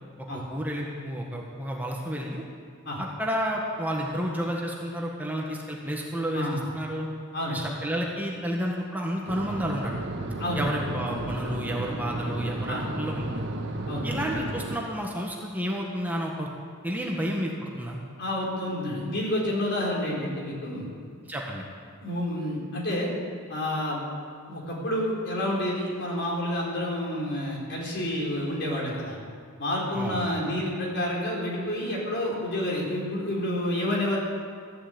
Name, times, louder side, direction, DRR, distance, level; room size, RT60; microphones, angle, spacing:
voice 1, 0.3-2.4 3.0-7.1 7.5-9.9 10.5-13.4 14.0-16.5 16.8-18.0 21.3-21.6 29.9-30.3, equal, 10° right, -2 dB, 1.5 m, -31 dB
voice 2, 6.3-6.7 7.3-7.6 10.4-10.6 12.7-12.9 13.9-14.1 18.2-20.9 22.0-23.1 23.5-24.0 24.5-29.2 29.6-34.2, left 1 dB, 55° left, -3 dB, 4.5 m, -29 dB
sound 1, 9.3-14.8, right 2 dB, 55° right, 1.6 m, -33 dB
14.5 x 11.5 x 8.5 m, 2.1 s
head